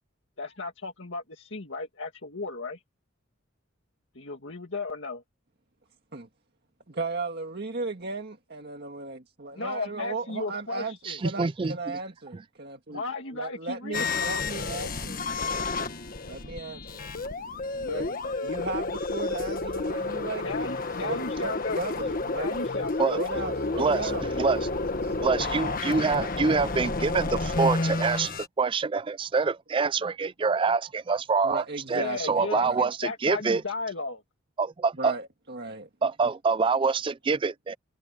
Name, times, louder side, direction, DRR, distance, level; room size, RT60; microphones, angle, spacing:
voice 1, 0.4-2.8 4.1-5.2 9.5-11.2 12.9-14.3 17.8-18.3 20.4-21.8 22.4-23.1 31.9-34.2, left 3 dB, 65° left, 2.0 m, -35 dB
voice 2, 6.9-11.0 11.2-13.0 13.3-15.2 16.2-17.0 17.7-18.1 18.4-20.5 21.0-22.6 23.0-24.3 25.0-25.8 31.4-32.9 35.0-35.9, right 3 dB, 50° right, 1.9 m, -36 dB
voice 3, 11.1-12.0 23.0-23.2 23.8-24.1 24.4-24.6 25.2-28.3 28.6-31.6 31.9-33.6 34.6-35.1 36.0-37.8, right 4 dB, 25° right, 0.3 m, -26 dB
sound 1, 13.9-28.5, left 3 dB, 45° left, 1.5 m, -30 dB
head